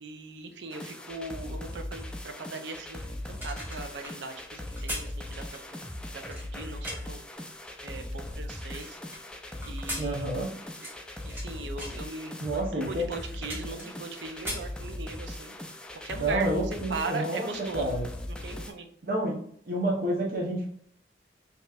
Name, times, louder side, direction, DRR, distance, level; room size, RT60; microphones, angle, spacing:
voice 1, 0.0-5.8 6.3-7.2 7.8-9.0 9.6-10.9 11.2-15.5 15.9-18.0 18.3-18.9, right 3 dB, 85° right, 5 dB, 0.6 m, -39 dB
sound 1, 0.7-18.7, left 1 dB, 5° left, 0.3 m, -39 dB
sound 2, 3.4-7.2 7.8-9.2 9.6-11.5 11.8-12.1 12.7-12.8 13.0-14.1 14.3-15.3 15.7-15.9, equal, 10° right, 1.1 m, -40 dB
voice 2, 10.0-10.5 12.4-13.1 13.7-13.8 16.2-17.5 17.7-18.1 19.0-19.3 19.6-20.7, right 1 dB, 50° right, -3 dB, 1.0 m, -29 dB
5.2 x 2.9 x 2.4 m, 0.63 s
head